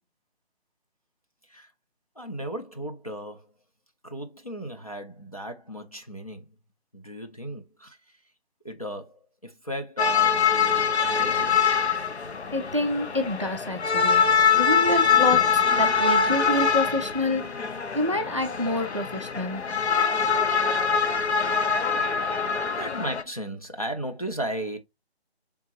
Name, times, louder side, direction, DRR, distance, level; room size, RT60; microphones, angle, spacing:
voice 1, 2.2-3.5 4.0-6.5 6.9-8.0 8.6-11.6 21.5-21.8 22.5-24.8, right 1 dB, 35° left, 0.4 m, -36 dB
sound 1, 10.0-23.2, left 6 dB, 85° left, 0.7 m, -23 dB
voice 2, 12.5-17.6 17.9-19.7, left 1 dB, 30° right, 0.4 m, -28 dB
3.9 x 3.5 x 2.8 m
figure-of-eight pair, 170°, 32 cm